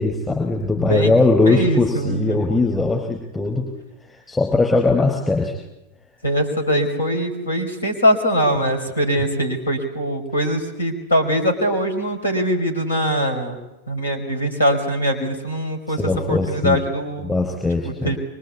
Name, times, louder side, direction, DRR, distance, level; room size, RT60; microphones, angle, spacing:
voice 1, 0.0-3.7 4.0-5.6 15.9-16.8 17.2-18.2, left 3 dB, 10° left, 1 dB, 4.8 m, -20 dB
voice 2, 1.4-2.4 6.2-13.6 13.9-16.0 16.3-17.3 17.8-18.2, equal, 75° left, 5 dB, 5.1 m, -22 dB
25.0 x 24.5 x 8.6 m, 0.92 s
figure-of-eight pair, 90°, 0 cm